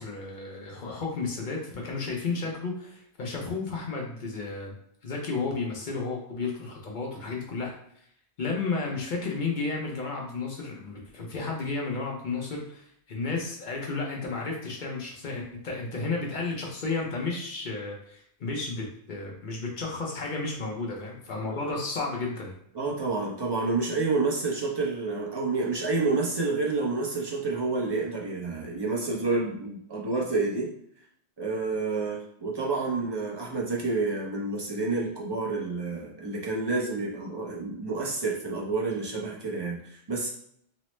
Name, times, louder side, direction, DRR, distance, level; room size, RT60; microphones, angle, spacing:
voice 1, 0.0-4.7 5.0-7.7 8.4-22.5, left 3 dB, 55° left, -1 dB, 0.7 m, -32 dB
voice 2, 22.7-30.7 31.4-40.3, right 3 dB, 30° right, -3 dB, 0.5 m, -29 dB
3.0 x 2.0 x 3.0 m, 0.69 s
omnidirectional pair, 1.1 m